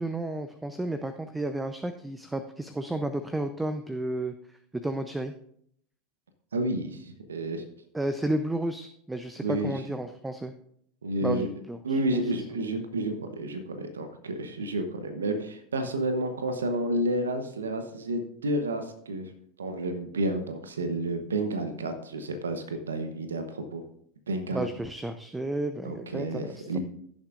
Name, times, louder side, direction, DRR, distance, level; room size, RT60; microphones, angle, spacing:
voice 1, 0.0-4.3 4.7-5.3 7.9-10.5 11.2-12.0 24.5-26.8, right 1 dB, 10° right, 9 dB, 0.6 m, -32 dB
voice 2, 6.5-7.6 9.4-9.8 11.0-11.5 11.8-19.3 19.6-23.8 24.3-24.7 25.8-26.8, right 1 dB, 85° right, 8 dB, 0.9 m, -30 dB
16.0 x 7.3 x 2.5 m, 0.69 s
hypercardioid pair, 85°, 0 cm